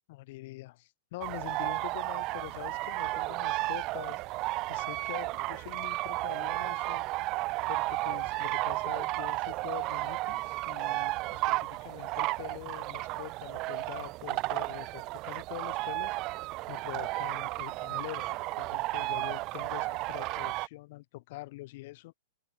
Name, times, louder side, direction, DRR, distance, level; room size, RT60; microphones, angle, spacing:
voice 1, 0.1-7.3 7.7-22.1, left 19 dB, 45° left, 7.4 m, -45 dB
sound 1, 1.2-20.7, right 21 dB, 35° right, 1.1 m, -33 dB
open air
figure-of-eight pair, 105°, 0 cm